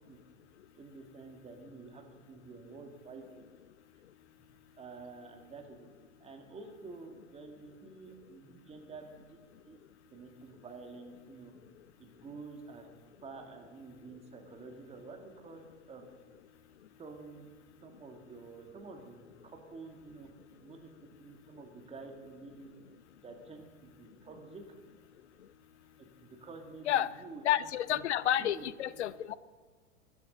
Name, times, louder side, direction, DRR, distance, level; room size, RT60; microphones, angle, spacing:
voice 1, 0.7-3.4 4.4-4.5 4.8-5.9 6.2-9.8 10.1-11.5 12.0-12.9 13.2-16.1 17.0-17.5 17.8-20.3 20.6-20.9 21.2-22.7 23.2-24.6 24.9-25.1 26.0-28.0 28.4-28.6 29.0-29.1, right 3 dB, 15° right, 3 dB, 2.3 m, -49 dB
voice 2, 27.4-29.4, left 12 dB, 60° left, 17 dB, 0.6 m, -30 dB
24.0 x 11.0 x 4.0 m, 1.4 s
figure-of-eight pair, 95°, 38 cm